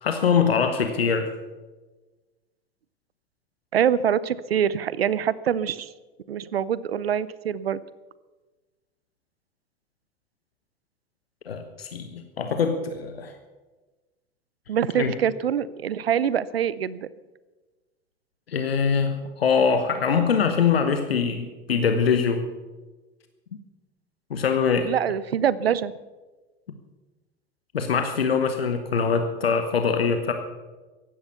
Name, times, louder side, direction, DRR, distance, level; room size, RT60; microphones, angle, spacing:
voice 1, 0.0-1.3 11.4-13.3 14.9-15.1 18.5-22.5 24.3-24.9 27.7-30.3, left 6 dB, 85° left, 7 dB, 1.1 m, -23 dB
voice 2, 3.7-5.9 6.3-7.8 14.7-17.1 24.9-25.9, right 9 dB, 85° right, 19 dB, 0.6 m, -24 dB
15.0 x 11.0 x 6.9 m, 1.2 s
figure-of-eight pair, 70°, 29 cm